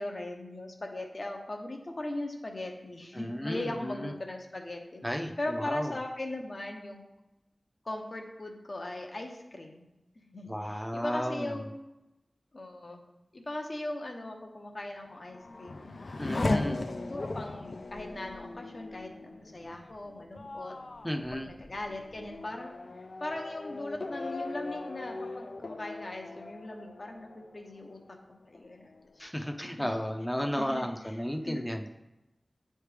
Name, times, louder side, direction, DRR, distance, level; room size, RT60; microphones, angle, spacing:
voice 1, 0.0-5.0 5.4-7.0 7.8-9.9 10.2-11.7 12.5-13.0 13.3-16.0 16.2-16.8 17.1-20.8 21.3-22.7 23.0-29.4 29.8-29.9 30.6-31.2 31.4-31.6, left 1 dB, 55° left, 2 dB, 0.8 m, -39 dB
voice 2, 3.1-4.1 5.0-5.9 10.5-11.5 16.2-16.8 21.0-21.5 29.2-31.9, equal, 10° left, 3 dB, 0.5 m, -33 dB
Race car auto racing / Accelerating revving vroom, 14.9-28.2 28.5-29.2, left 2 dB, 70° left, 0.3 m, -38 dB
8.9 x 3.3 x 3.3 m, 0.96 s
wide cardioid pair, 75°, 0 cm